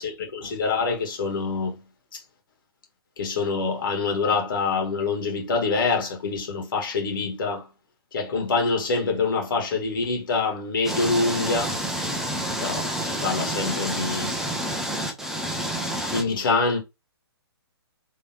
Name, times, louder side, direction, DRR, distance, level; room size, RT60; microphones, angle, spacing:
voice 1, 0.0-1.8 2.1-2.2 3.2-7.7 8.1-11.8 12.6-14.4 15.8-16.8, left 4 dB, 55° left, 1.9 m, -26 dB
sound 1, 10.8-16.2, right 1 dB, ahead, 0.7 m, -29 dB
4.0 x 3.2 x 3.0 m
figure-of-eight pair, 135°, 13 cm